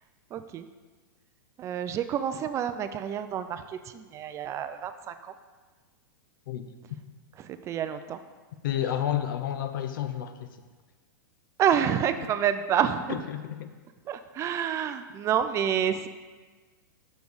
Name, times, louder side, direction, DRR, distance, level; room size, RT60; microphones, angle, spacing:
voice 1, 0.3-0.6 1.6-5.3 7.4-8.2 11.6-13.2 14.1-16.1, right 9 dB, 25° right, 10 dB, 0.3 m, -28 dB
voice 2, 8.6-10.5 13.1-13.7, left 10 dB, 70° left, 9 dB, 0.6 m, -30 dB
6.3 x 5.2 x 4.7 m, 1.4 s
hypercardioid pair, 125°, 12 cm